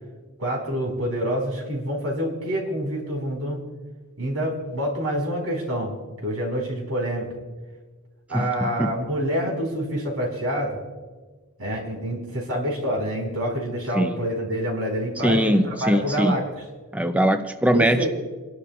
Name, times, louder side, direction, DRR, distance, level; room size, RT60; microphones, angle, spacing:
voice 1, 0.4-3.6 4.2-6.0 6.2-7.3 8.3-10.8 11.6-16.6 17.7-18.1, equal, 75° right, 0 dB, 4.7 m, -27 dB
voice 2, 8.3-8.9 13.9-14.1 15.2-16.3 16.9-18.1, right 1 dB, 5° right, 7 dB, 0.4 m, -21 dB
29.0 x 12.0 x 2.4 m, 1.3 s
head